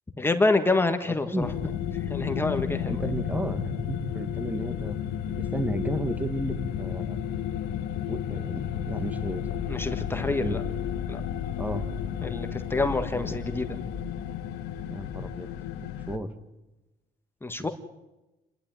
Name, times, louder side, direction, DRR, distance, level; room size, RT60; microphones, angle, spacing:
voice 1, 0.2-1.5 2.1-3.0 9.7-10.6 11.1-11.2 12.2-13.8 17.4-17.7, left 3 dB, 15° left, 7 dB, 1.6 m, -27 dB
sound 1, 1.4-16.2, left 9 dB, 90° left, 1.6 m, -32 dB
voice 2, 2.8-5.0 5.4-7.2 8.1-9.5 10.1-10.6 11.6-11.9 13.2-13.4 14.9-15.5 15.8-16.3, right 1 dB, 10° right, 9 dB, 1.8 m, -33 dB
28.0 x 11.5 x 9.5 m, 1.0 s
cardioid pair, 110°, 17 cm